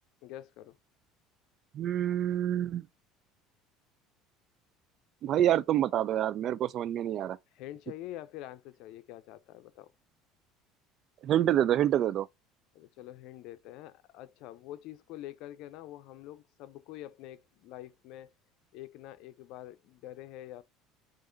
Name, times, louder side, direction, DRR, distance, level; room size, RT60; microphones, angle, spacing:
voice 1, 0.2-0.8 7.5-9.9 12.7-18.3 18.7-20.6, left 14 dB, 70° left, 0.5 m, -46 dB
voice 2, 1.7-2.9 5.2-7.4 11.2-12.3, right 11 dB, 55° right, 0.4 m, -27 dB
4.9 x 2.5 x 3.8 m
supercardioid pair, 90°, 0 cm